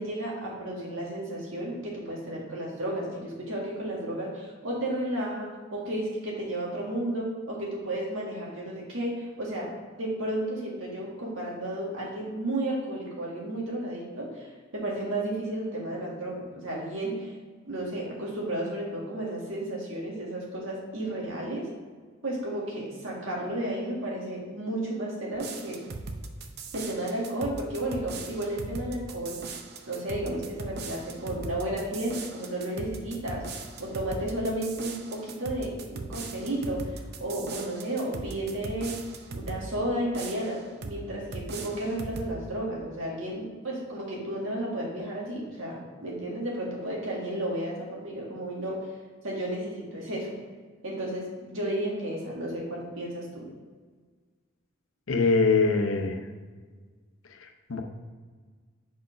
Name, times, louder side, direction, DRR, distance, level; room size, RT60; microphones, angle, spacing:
voice 1, 0.0-14.5 14.7-17.3 17.7-21.7 22.2-25.8 26.7-29.4 29.9-33.5 33.8-39.0 39.3-48.9 49.2-50.3 50.8-53.5, right 1 dB, 80° right, -3 dB, 1.8 m, -33 dB
sound 1, 25.3-39.7 40.1-41.0 41.3-42.4, right 3 dB, 55° right, 0.6 m, -39 dB
voice 2, 55.1-56.2 57.3-57.8, left 4 dB, 85° left, 5 dB, 0.7 m, -24 dB
5.1 x 4.7 x 5.1 m, 1.5 s
head